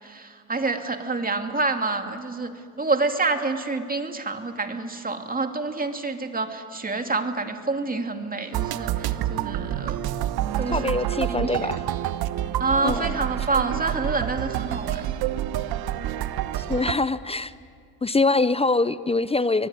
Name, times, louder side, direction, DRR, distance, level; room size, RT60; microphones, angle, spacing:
voice 1, 0.0-10.0 10.6-11.7 12.6-15.1, right 3 dB, 20° right, 6 dB, 2.5 m, -28 dB
sound 1, 8.5-16.9, right 12 dB, 65° right, 1.1 m, -28 dB
voice 2, 10.7-11.8 12.8-13.2 16.5-17.5 18.0-19.7, left 3 dB, 15° left, 16 dB, 0.6 m, -24 dB
24.0 x 20.5 x 9.6 m, 2.1 s
supercardioid pair, 85°, 40 cm